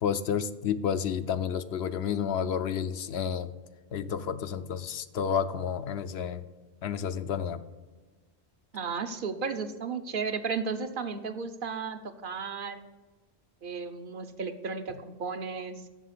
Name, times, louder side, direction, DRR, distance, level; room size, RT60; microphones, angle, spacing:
voice 1, 0.0-3.5 3.9-6.4 6.8-7.6, left 7 dB, 75° left, 11 dB, 0.8 m, -30 dB
voice 2, 8.7-12.8 13.6-15.8, right 5 dB, 55° right, 8 dB, 0.9 m, -34 dB
7.5 x 7.1 x 6.6 m, 1.3 s
omnidirectional pair, 1.1 m